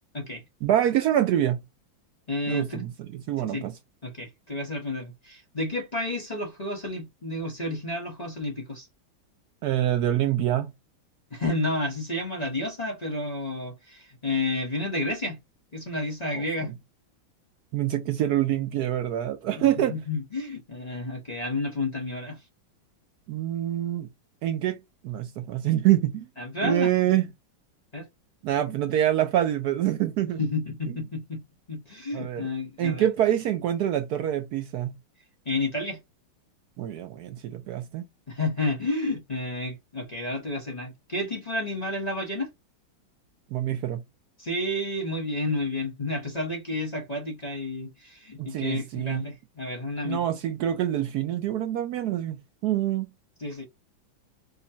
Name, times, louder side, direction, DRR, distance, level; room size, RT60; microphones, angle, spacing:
voice 1, 0.6-1.6 2.5-3.7 9.6-10.7 16.3-16.4 17.7-20.0 23.3-24.1 24.4-24.8 25.0-26.3 26.6-27.3 28.4-30.4 32.1-32.4 32.8-34.9 36.8-38.1 43.5-44.0 48.4-49.2 50.0-53.1, right 12 dB, 80° right, 0.8 m, -26 dB
voice 2, 2.3-2.8 3.5-3.6 4.0-8.9 11.3-15.4 15.7-16.7 19.9-22.4 26.4-27.2 27.9-28.1 30.4-31.4 31.7-33.1 35.4-36.0 38.3-42.5 44.4-50.2 53.4-53.7, left 2 dB, 30° left, 0.8 m, -31 dB
5.2 x 2.2 x 2.6 m
omnidirectional pair, 2.2 m